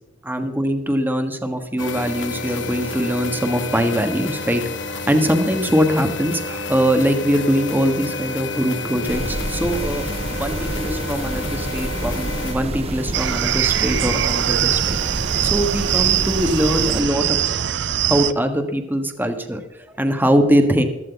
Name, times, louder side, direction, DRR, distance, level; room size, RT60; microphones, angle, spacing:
voice 1, 0.2-10.0 10.3-15.0 15.4-17.4 18.1-20.8, equal, 10° right, 6 dB, 1.3 m, -22 dB
sound 1, 1.8-12.5, left 3 dB, 75° left, 1.3 m, -30 dB
sound 2, 9.1-17.0, right 1 dB, 35° right, 1.1 m, -28 dB
sound 3, 13.1-18.3, right 10 dB, 65° right, 0.5 m, -22 dB
15.0 x 13.5 x 4.0 m, 0.99 s
head